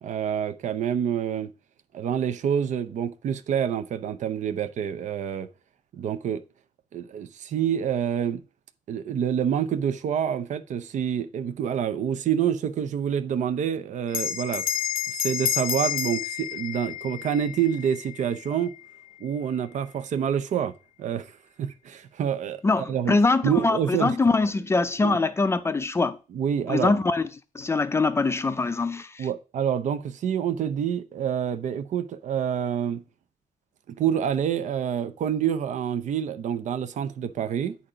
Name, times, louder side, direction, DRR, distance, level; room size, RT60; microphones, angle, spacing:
voice 1, 0.0-1.5 1.9-5.5 5.9-6.4 6.9-8.4 8.9-14.6 15.2-18.7 19.2-20.7 21.0-21.3 21.6-23.2 23.4-24.2 25.0-25.2 26.3-26.9 29.2-33.0 33.9-37.8, right 8 dB, 60° right, 0.6 m, -27 dB
Bell, 14.1-19.0, left 10 dB, 75° left, 0.8 m, -30 dB
voice 2, 22.6-26.2 26.7-27.2 27.5-29.1, left 3 dB, 20° left, 0.5 m, -23 dB
8.8 x 4.2 x 5.0 m
cardioid pair, 130°, 14 cm